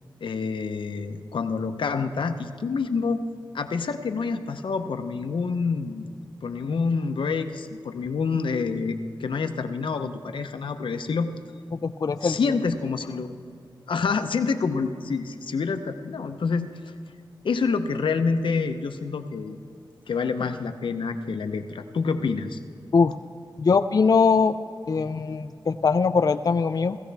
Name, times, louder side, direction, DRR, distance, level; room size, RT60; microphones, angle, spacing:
voice 1, 0.2-3.2 3.5-6.1 6.4-11.3 12.2-13.3 13.9-16.7 17.4-19.6 20.1-22.6, left 5 dB, 85° left, 7 dB, 0.7 m, -27 dB
voice 2, 11.7-12.4 22.9-23.1 23.6-24.6 24.9-27.0, left 5 dB, 50° left, 9 dB, 0.3 m, -21 dB
18.0 x 14.5 x 3.4 m, 2.4 s
wide cardioid pair, 75°, 8 cm